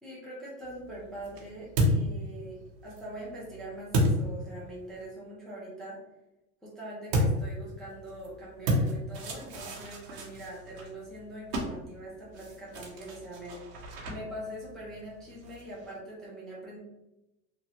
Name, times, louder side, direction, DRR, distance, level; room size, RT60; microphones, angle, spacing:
voice 1, 0.0-6.0 6.6-16.8, right 1 dB, ahead, -7 dB, 0.3 m, -43 dB
sound 1, 0.6-5.0 7.1-15.9, equal, 50° right, 1.0 m, -33 dB
3.0 x 2.3 x 2.9 m, 0.94 s
supercardioid pair, 130°, 49 cm